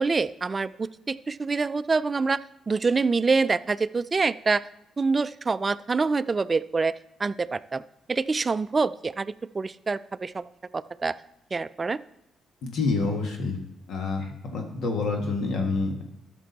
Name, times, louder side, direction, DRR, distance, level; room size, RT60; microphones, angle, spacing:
voice 1, 0.0-4.6 5.0-6.9 7.2-7.8 8.1-10.5 10.7-11.1 11.5-12.0, right 4 dB, 30° right, 16 dB, 0.3 m, -26 dB
voice 2, 12.6-13.6 13.9-16.0, left 3 dB, 70° left, 3 dB, 1.7 m, -27 dB
13.0 x 6.1 x 4.1 m, 0.82 s
cardioid pair, 90°, 0 cm